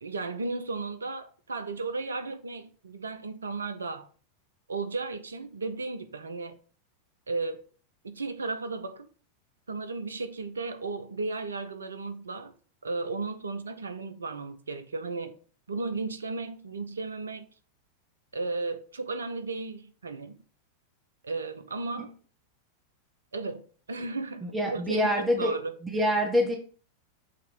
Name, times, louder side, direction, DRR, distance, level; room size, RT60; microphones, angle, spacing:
voice 1, 0.0-4.1 4.7-6.6 7.3-7.6 8.0-9.1 9.7-12.5 12.8-15.4 15.7-17.5 18.3-20.4 21.2-22.1 23.3-25.1 25.4-25.8, right 3 dB, 70° right, 0.6 m, -34 dB
voice 2, 24.4-25.6 25.9-26.6, equal, 10° right, 1.1 m, -25 dB
6.7 x 3.0 x 5.1 m
figure-of-eight pair, 90°, 0 cm